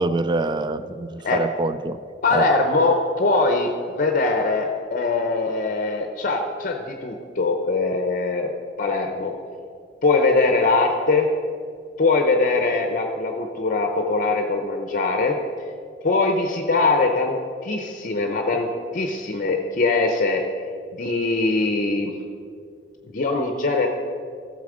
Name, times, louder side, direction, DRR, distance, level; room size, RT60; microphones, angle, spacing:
voice 1, 0.0-2.0 2.3-2.4, right 2 dB, 25° right, 13 dB, 0.3 m, -25 dB
voice 2, 2.2-8.5 8.8-9.3 10.0-11.3 12.0-15.4 16.0-17.4 17.6-20.4 20.9-22.1 23.1-23.9, left 3 dB, 45° left, 4 dB, 0.7 m, -22 dB
13.0 x 7.3 x 4.9 m, 2.3 s
head